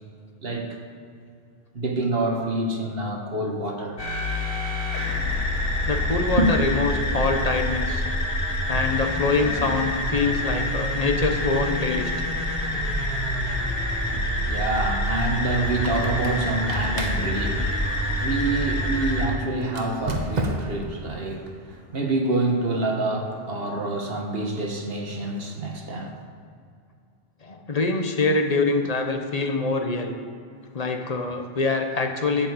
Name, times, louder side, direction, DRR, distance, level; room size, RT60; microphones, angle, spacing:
voice 1, 0.4-0.8 1.7-4.0 6.3-6.5 14.0-26.2, right 2 dB, 70° right, 2 dB, 1.6 m, -27 dB
sound 1, 4.0-19.3, left 1 dB, 80° left, 3.9 m, -26 dB
voice 2, 5.9-8.0 8.7-12.1 27.4-30.1 30.7-32.5, left 3 dB, 40° left, 3 dB, 1.2 m, -24 dB
Squeak, 15.7-18.9 19.7-20.9, right 1 dB, 45° right, 1.1 m, -33 dB
12.5 x 5.4 x 8.0 m, 2.4 s
omnidirectional pair, 1.0 m